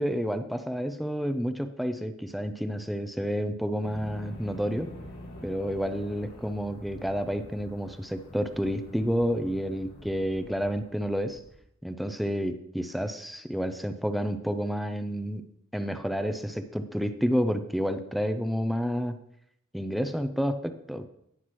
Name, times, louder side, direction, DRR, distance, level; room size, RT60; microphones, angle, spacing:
voice 1, 0.0-4.9 5.4-11.4 11.8-15.4 15.7-19.1 19.7-21.1, equal, ahead, 7 dB, 0.5 m, -30 dB
sound 1, 3.8-11.6, left 1 dB, 80° left, 3.2 m, -47 dB
17.5 x 5.9 x 3.1 m, 0.76 s
head